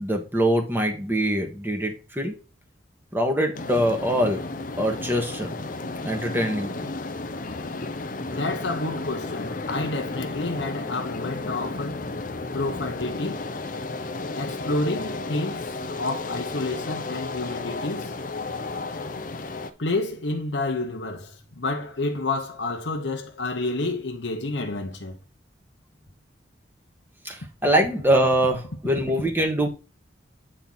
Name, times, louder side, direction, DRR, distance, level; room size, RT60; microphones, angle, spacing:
voice 1, 0.0-2.3 3.1-4.5 4.8-5.5 6.0-6.9 27.2-29.7, right 1 dB, 10° right, 1.7 m, -23 dB
sound 1, 3.5-19.7, left 3 dB, 50° left, 0.8 m, -33 dB
voice 2, 8.3-12.0 12.5-13.5 14.4-18.1 19.8-25.2, left 2 dB, 90° left, 1.1 m, -29 dB
9.0 x 4.2 x 4.0 m
head